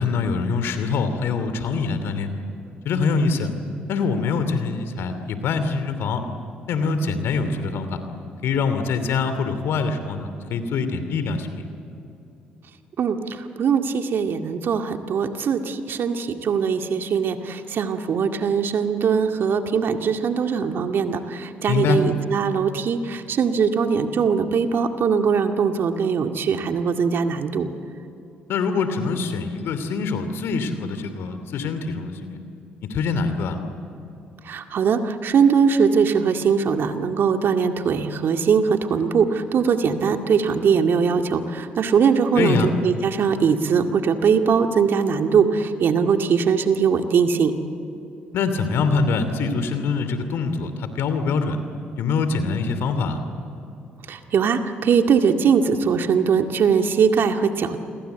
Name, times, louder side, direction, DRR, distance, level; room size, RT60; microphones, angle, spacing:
voice 1, 0.0-2.3 2.8-3.5 3.9-6.2 6.7-8.0 8.4-11.7 21.7-22.0 28.5-32.4 32.9-33.6 42.4-42.7 48.3-51.6 52.0-53.2, left 4 dB, 70° left, 9 dB, 2.8 m, -24 dB
voice 2, 13.0-27.7 34.5-47.5 54.1-57.8, right 6 dB, 60° right, 6 dB, 2.0 m, -21 dB
29.0 x 22.5 x 8.1 m, 2.8 s
hypercardioid pair, 50°, 4 cm